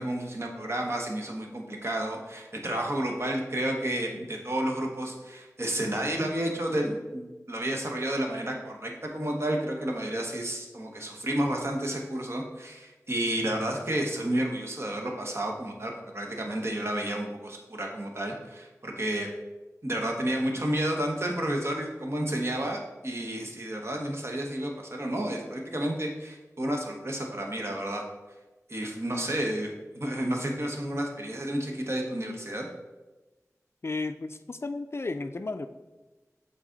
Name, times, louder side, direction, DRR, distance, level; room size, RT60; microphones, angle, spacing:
voice 1, 0.0-19.3 19.8-28.0 28.7-29.7 29.9-32.7, right 1 dB, 45° right, 1 dB, 1.1 m, -31 dB
voice 2, 33.8-35.7, left 3 dB, 45° left, 9 dB, 0.3 m, -33 dB
6.2 x 4.0 x 3.9 m, 1.1 s
wide cardioid pair, 40°, 6 cm